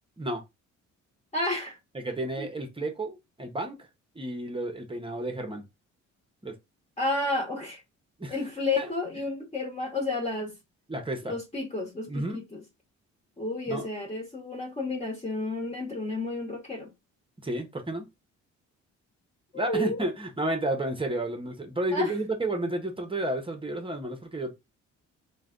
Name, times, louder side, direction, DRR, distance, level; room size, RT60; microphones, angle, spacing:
voice 1, 1.3-1.8 7.0-7.8 8.3-10.5 11.2-12.6 13.4-16.9 19.5-20.0 21.9-22.1, left 2 dB, 20° left, 1.2 m, -31 dB
voice 2, 1.9-3.9 4.1-5.6 6.4-6.6 8.2-8.3 8.8-8.9 10.9-11.4 12.1-12.4 13.7-13.9 17.4-18.1 19.5-24.5, right 1 dB, 15° right, 0.9 m, -31 dB
3.2 x 2.3 x 3.7 m
cardioid pair, 90°, 30 cm